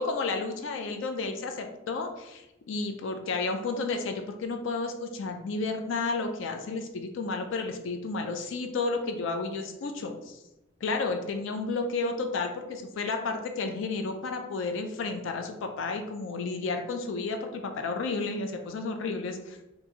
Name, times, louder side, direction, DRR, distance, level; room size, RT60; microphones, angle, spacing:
voice 1, 0.0-10.4 10.8-19.6, left 3 dB, 65° left, 5 dB, 0.4 m, -32 dB
2.9 x 2.5 x 3.5 m, 0.93 s
head